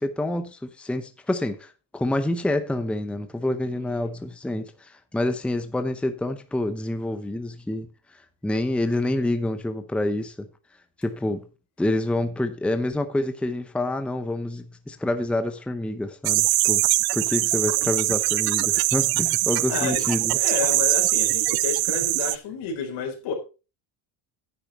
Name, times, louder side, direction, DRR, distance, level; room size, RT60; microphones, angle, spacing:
voice 1, 0.0-7.9 8.4-10.5 11.0-11.5 11.8-16.8 17.1-20.4, left 1 dB, ahead, 0.8 m, -27 dB
voice 2, 3.7-4.1 19.7-23.3, left 6 dB, 60° left, 4.3 m, -31 dB
sound 1, 16.2-22.4, right 19 dB, 55° right, 0.5 m, -22 dB
10.0 x 9.1 x 4.2 m
cardioid pair, 135°, 46 cm